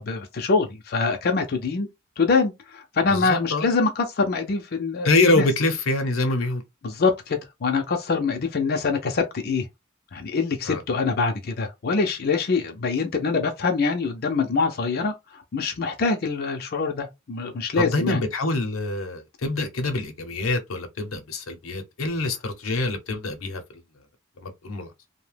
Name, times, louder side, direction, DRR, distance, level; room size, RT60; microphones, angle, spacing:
voice 1, 0.0-1.9 2.2-5.5 6.8-9.7 10.1-18.2, left 4 dB, 50° left, 0.5 m, -24 dB
voice 2, 3.1-3.7 5.0-6.6 10.6-10.8 17.8-23.6 24.4-24.9, left 2 dB, 85° left, 0.7 m, -25 dB
2.8 x 2.1 x 3.2 m
head